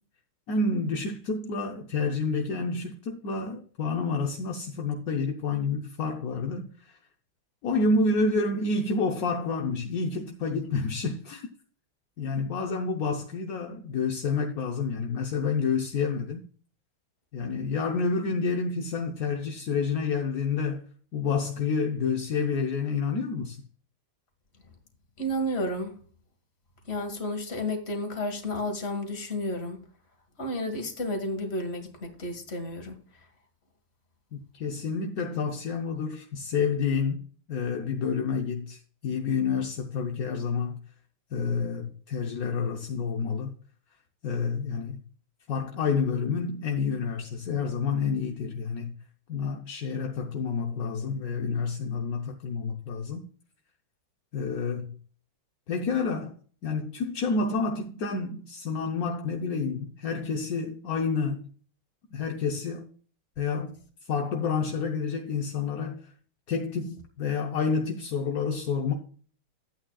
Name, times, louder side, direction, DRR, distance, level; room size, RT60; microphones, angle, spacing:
voice 1, 0.5-7.0 7.6-11.5 12.2-16.5 17.3-20.8 21.1-23.6 34.3-37.2 37.5-40.8 41.3-43.5 44.2-45.0 45.5-48.9 49.3-53.3 54.3-55.0 55.7-56.3 56.6-61.4 62.1-62.9 63.4-63.8 64.1-66.0 66.5-68.9, left 4 dB, 60° left, 1.0 m, -29 dB
voice 2, 25.2-25.9 26.9-29.8 30.4-33.0, left 1 dB, 30° left, 1.8 m, -31 dB
11.0 x 8.7 x 2.3 m
omnidirectional pair, 2.3 m